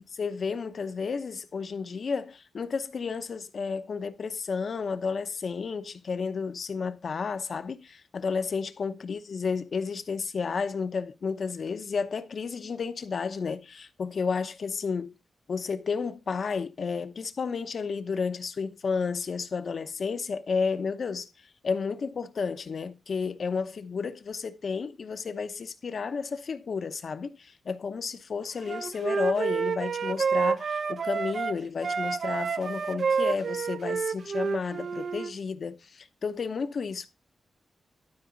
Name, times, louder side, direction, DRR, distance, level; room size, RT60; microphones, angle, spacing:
voice 1, 0.0-15.1 15.5-37.1, left 5 dB, 55° left, 0.8 m, -32 dB
Wind instrument woodwind instrument, 28.7-31.6 31.8-35.3, right 5 dB, 55° right, 0.4 m, -29 dB
12.5 x 4.8 x 4.0 m
wide cardioid pair, 125°, 0 cm